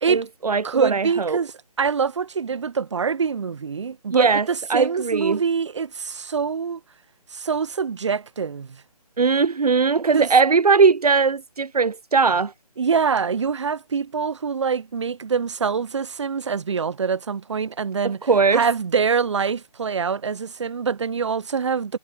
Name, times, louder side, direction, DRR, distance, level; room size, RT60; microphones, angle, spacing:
voice 1, 0.1-1.4 4.1-5.4 9.2-12.5 18.2-18.6, right 5 dB, 70° right, 1.2 m, -19 dB
voice 2, 0.6-1.5 1.8-6.8 7.3-8.7 10.1-10.3 12.8-18.2 18.5-22.0, right 6 dB, 50° right, 1.7 m, -24 dB
figure-of-eight pair, 165°, 20 cm